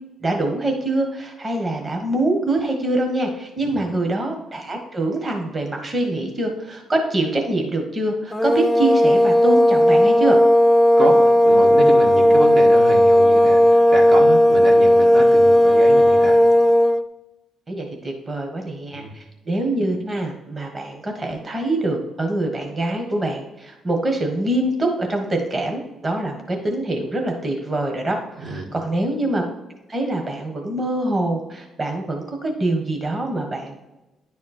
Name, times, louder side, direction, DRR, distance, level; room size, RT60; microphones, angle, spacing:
voice 1, 0.2-10.4 17.7-29.4 29.9-33.9, right 2 dB, 30° right, 2 dB, 1.4 m, -24 dB
sound 1, 8.3-17.0, equal, 5° right, 0.5 m, -14 dB
voice 2, 11.0-16.4 18.9-19.1 28.4-28.7, right 2 dB, 65° right, 0 dB, 1.6 m, -28 dB
10.0 x 4.2 x 4.3 m, 1.0 s
cardioid pair, 90°, 0 cm